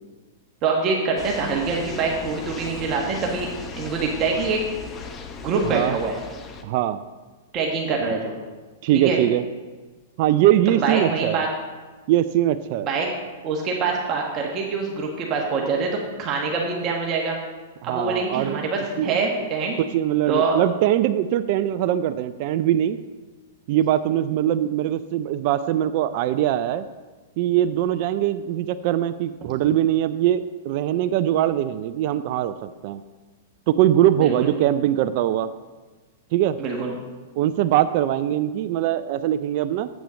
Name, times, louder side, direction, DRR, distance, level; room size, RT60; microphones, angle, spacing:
voice 1, 0.6-3.5 3.8-4.6 5.4-6.1 7.5-8.4 8.9-9.2 10.8-11.5 12.8-13.1 13.4-17.4 17.8-19.7 20.3-20.6 34.2-34.5 36.6-36.9, right 4 dB, 35° right, -1 dB, 1.4 m, -24 dB
sound 1, 1.2-6.6, left 5 dB, 25° left, 0.9 m, -37 dB
voice 2, 6.6-7.0 8.8-9.4 10.2-11.4 12.1-12.9 17.8-19.1 19.9-23.0 23.7-26.9 27.4-33.0 33.7-35.5 36.3-36.6 37.4-39.9, right 12 dB, 50° right, 11 dB, 0.4 m, -22 dB
8.3 x 6.2 x 6.2 m, 1.3 s
hypercardioid pair, 120°, 0 cm